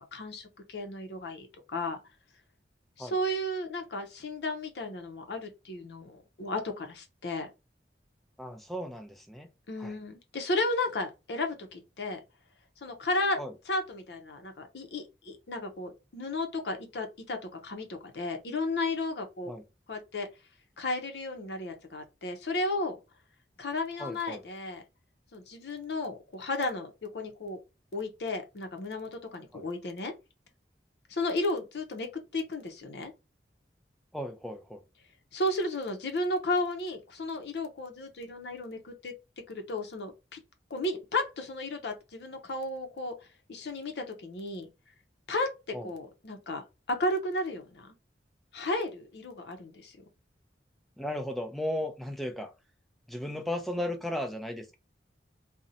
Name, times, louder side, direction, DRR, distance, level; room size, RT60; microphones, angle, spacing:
voice 1, 0.1-2.0 3.0-7.5 9.7-12.2 12.8-19.5 19.9-20.3 20.8-23.0 23.6-24.8 25.3-27.6 27.9-30.1 31.1-33.1 35.3-39.1 39.5-40.4 40.7-43.2 43.5-44.7 45.3-47.9 48.5-50.0, left 2 dB, 70° left, 0.6 m, -34 dB
voice 2, 8.4-9.5 9.8-9.9 13.4-13.5 19.5-19.6 24.0-24.4 29.5-29.6 34.1-34.8 45.7-45.9 51.0-52.5 53.1-54.7, left 1 dB, ahead, 0.4 m, -35 dB
2.6 x 2.0 x 2.6 m
head